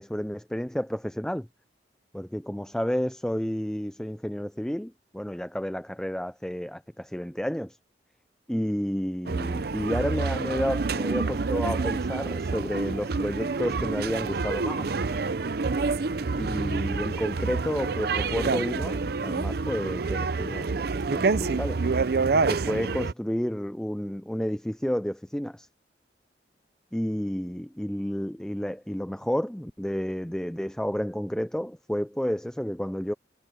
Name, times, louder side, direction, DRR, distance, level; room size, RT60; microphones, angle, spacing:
voice 1, 0.0-1.5 2.1-7.8 8.5-15.0 16.4-21.8 22.5-25.7 26.9-33.1, equal, 5° left, 0.5 m, -31 dB
sound 1, 9.3-23.1, right 4 dB, 60° right, 0.6 m, -28 dB
head